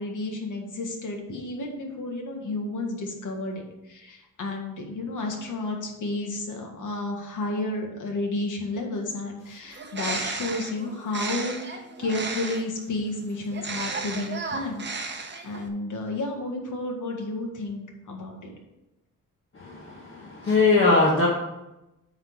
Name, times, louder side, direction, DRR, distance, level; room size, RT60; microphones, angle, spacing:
voice 1, 0.0-14.8 15.1-18.5, left 2 dB, 65° left, 1 dB, 1.8 m, -32 dB
Bird, 9.7-12.8 13.5-15.7, right 4 dB, 35° right, 0.8 m, -34 dB
voice 2, 19.6-21.3, left 3 dB, 40° left, -4 dB, 1.4 m, -21 dB
8.8 x 3.8 x 6.2 m, 0.95 s
wide cardioid pair, 140°, 33 cm